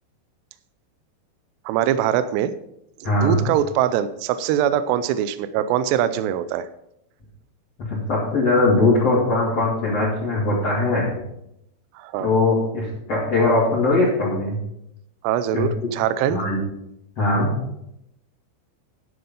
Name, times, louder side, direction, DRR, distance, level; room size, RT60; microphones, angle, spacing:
voice 1, 1.7-2.5 3.0-6.7 12.0-12.3 15.2-16.4, right 10 dB, 85° right, 13 dB, 2.4 m, -22 dB
voice 2, 3.0-3.4 7.9-11.2 12.2-14.6 15.5-15.7 16.3-16.6 17.2-17.5, left 2 dB, 40° left, -7 dB, 2.9 m, -20 dB
11.5 x 6.8 x 5.5 m, 0.81 s
omnidirectional pair, 5.4 m